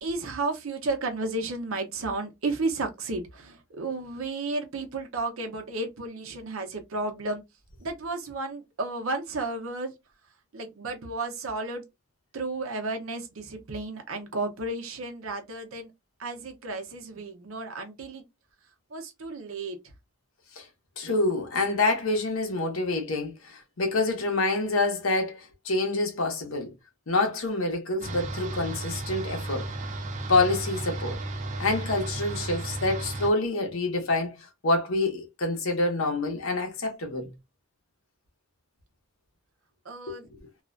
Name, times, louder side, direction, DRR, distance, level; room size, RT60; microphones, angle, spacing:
voice 1, 0.0-7.4 7.8-9.9 10.5-11.8 12.3-15.9 16.2-18.2 18.9-19.8 39.8-40.3, right 3 dB, 75° right, 0.7 m, -33 dB
voice 2, 21.0-26.7 27.1-29.7 30.3-31.2 31.6-37.3 40.1-40.2, left 2 dB, 80° left, 0.8 m, -27 dB
sound 1, 28.0-33.3, right 2 dB, 35° right, 0.4 m, -34 dB
2.4 x 2.1 x 2.4 m
head